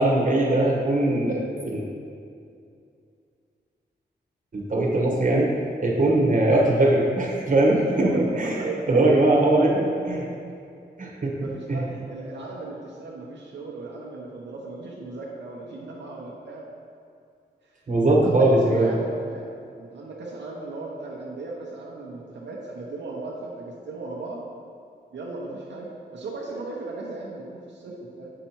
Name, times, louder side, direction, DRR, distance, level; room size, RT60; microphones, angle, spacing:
voice 1, 0.0-1.8 4.5-5.5 5.8-8.6 8.9-10.2 11.0-11.8 17.9-18.9, right 2 dB, 45° right, -3 dB, 1.2 m, -21 dB
voice 2, 7.8-9.8 11.4-16.7 17.6-19.5 19.8-24.4 25.1-28.3, right 3 dB, 85° right, -3 dB, 0.8 m, -37 dB
7.5 x 5.6 x 3.0 m, 2.5 s
wide cardioid pair, 90°, 18 cm